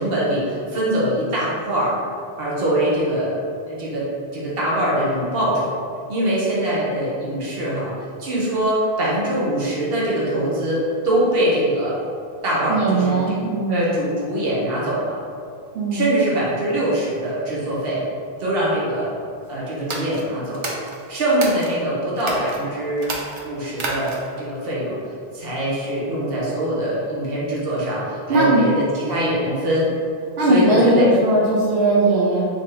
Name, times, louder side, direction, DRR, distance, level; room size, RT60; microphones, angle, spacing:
voice 1, 0.0-1.9 2.4-3.4 3.7-4.1 4.3-5.7 6.1-7.9 8.2-12.0 12.4-13.4 13.7-15.2 15.9-18.0 18.4-19.1 19.5-20.7 21.1-23.1 23.4-25.0 25.3-29.9 30.4-31.1, right 1 dB, 65° right, -6 dB, 1.1 m, -23 dB
voice 2, 12.7-13.8 15.7-16.0 28.3-28.7 30.4-32.4, right 2 dB, 90° right, -5 dB, 0.9 m, -18 dB
sound 1, 19.8-21.7 22.2-22.6 23.0-24.4, right 2 dB, 45° right, 0.4 m, -30 dB
3.3 x 2.7 x 3.7 m, 2.4 s
omnidirectional pair, 1.0 m